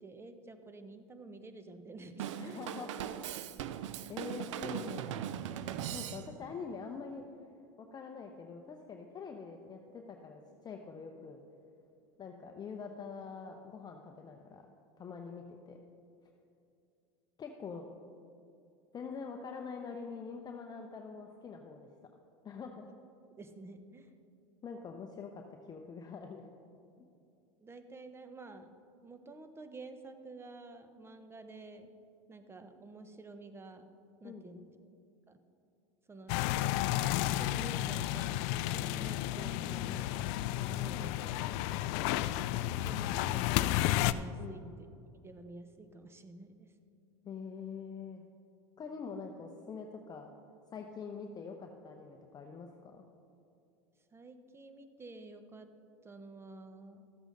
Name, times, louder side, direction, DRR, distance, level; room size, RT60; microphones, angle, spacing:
voice 1, 0.0-2.7 22.8-22.9 23.4-24.1 27.6-28.7 29.0-31.9 32.3-33.9 34.2-34.7 35.3-35.4 36.1-36.4 37.4-40.4 40.7-41.1 42.1-42.5 42.8-44.9 45.2-46.7 54.1-55.7 56.0-57.1, right 3 dB, 15° right, 9 dB, 0.8 m, -50 dB
Drum kit / Drum, 2.2-6.6, right 10 dB, 75° right, 0.5 m, -39 dB
voice 2, 2.4-3.1 4.1-5.5 5.9-7.2 7.8-11.4 12.2-14.7 15.0-15.8 17.4-17.9 18.9-21.9 22.4-22.9 24.6-26.4 27.0-27.1 34.2-34.7 40.6-41.6 44.4-44.7 47.2-48.2 48.8-50.3 50.7-53.0, left 5 dB, 25° left, 3 dB, 0.7 m, -45 dB
sound 1, 36.3-44.1, left 14 dB, 60° left, 0.4 m, -32 dB
13.0 x 8.0 x 3.9 m, 2.5 s
hypercardioid pair, 100°, 16 cm